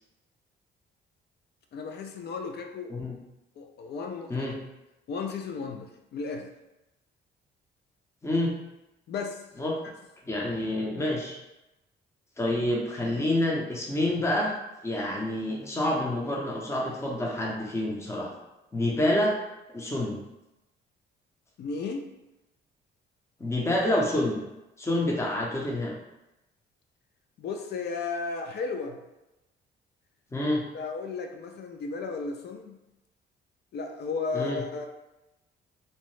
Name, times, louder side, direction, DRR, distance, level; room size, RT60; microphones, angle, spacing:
voice 1, 1.7-2.9 3.6-4.6 5.1-6.5 9.1-9.4 21.6-22.1 27.4-29.0 30.7-32.8 33.7-34.9, left 4 dB, 55° left, 4 dB, 0.4 m, -34 dB
voice 2, 10.3-11.4 12.4-14.5 14.8-18.3 18.7-19.3 19.7-20.2 23.4-24.4 24.8-25.9 30.3-30.6 34.3-34.6, left 1 dB, 15° left, -2 dB, 0.6 m, -27 dB
2.7 x 2.0 x 3.1 m, 0.97 s
cardioid pair, 90°, 20 cm